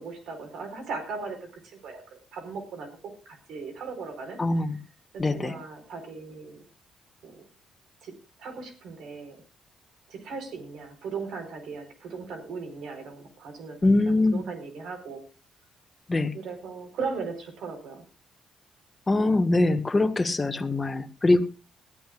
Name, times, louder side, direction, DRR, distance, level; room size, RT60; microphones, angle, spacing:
voice 1, 0.0-2.9 3.2-4.7 5.3-6.6 7.2-7.4 8.0-9.4 10.1-13.8 14.1-15.2 16.3-18.1, right 4 dB, 75° right, 7 dB, 4.4 m, -38 dB
voice 2, 4.4-4.8 5.2-5.5 13.8-14.4 16.1-16.3 19.1-21.5, left 2 dB, 20° left, 6 dB, 1.5 m, -23 dB
21.5 x 13.5 x 2.5 m, 0.33 s
cardioid pair, 90°, 0 cm